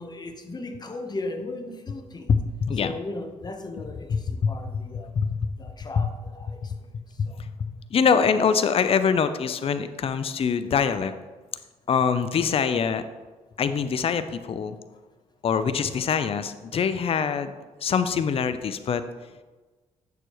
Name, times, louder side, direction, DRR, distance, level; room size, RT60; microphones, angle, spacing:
voice 1, 0.0-2.3 2.8-5.1 5.6-6.6 7.3-7.4, left 2 dB, 35° left, 6 dB, 1.0 m, -36 dB
voice 2, 2.3-2.9 4.1-4.5 5.2-5.4 6.0-6.1 7.2-7.5 7.9-11.1 11.9-13.0 13.6-14.8 15.4-17.5 17.8-19.0, left 6 dB, 50° left, 11 dB, 0.5 m, -24 dB
7.9 x 6.9 x 3.0 m, 1.2 s
cardioid pair, 70°, 13 cm